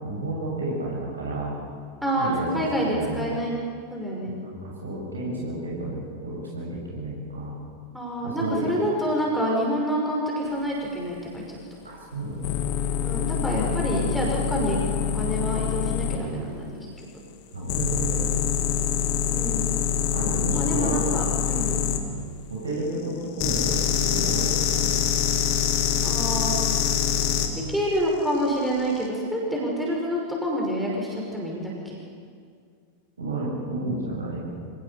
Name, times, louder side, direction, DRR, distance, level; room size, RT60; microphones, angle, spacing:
voice 1, 0.0-1.5 2.2-3.2 4.3-7.6 8.2-8.7 11.8-12.6 13.3-13.6 17.5-18.3 20.0-21.1 22.5-25.2 33.2-34.5, right 2 dB, 75° right, -3 dB, 7.2 m, -31 dB
voice 2, 2.0-3.5 3.9-4.3 7.9-11.6 13.0-14.8 15.1-16.7 19.3-19.7 20.5-21.7 26.0-26.6 27.6-32.0, equal, ahead, -4 dB, 5.5 m, -27 dB
sound 1, 12.4-16.2 17.7-22.0 23.4-27.5 28.7-29.0, left 8 dB, 45° left, 2.3 m, -25 dB
25.5 x 18.5 x 7.1 m, 2.1 s
figure-of-eight pair, 90°, 0 cm